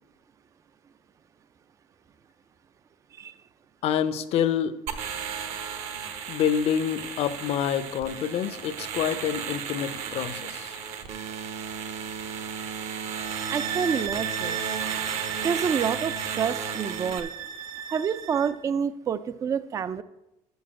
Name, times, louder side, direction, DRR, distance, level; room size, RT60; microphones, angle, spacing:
voice 1, 3.8-4.8 6.3-10.8, left 9 dB, 55° left, 13 dB, 0.7 m, -27 dB
sound 1, 4.9-17.2, right 7 dB, 65° right, 1.1 m, -34 dB
sound 2, 13.2-18.6, right 8 dB, 45° right, 1.0 m, -35 dB
voice 2, 13.5-14.6 15.4-17.3 17.9-20.0, right 7 dB, 25° right, 14 dB, 0.4 m, -28 dB
7.0 x 6.6 x 7.5 m, 0.91 s
cardioid pair, 135°, 12 cm